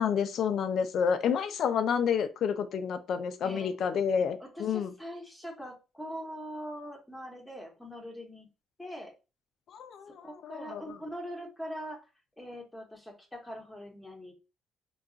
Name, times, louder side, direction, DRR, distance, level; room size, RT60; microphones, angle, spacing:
voice 1, 0.0-4.9 9.7-11.0, left 7 dB, 60° left, 9 dB, 0.3 m, -29 dB
voice 2, 3.4-4.0 4.4-8.5 8.8-9.1 10.1-12.0 12.4-14.3, equal, 5° left, 0 dB, 0.9 m, -42 dB
2.3 x 2.3 x 3.7 m, 0.30 s
cardioid pair, 130°, 0 cm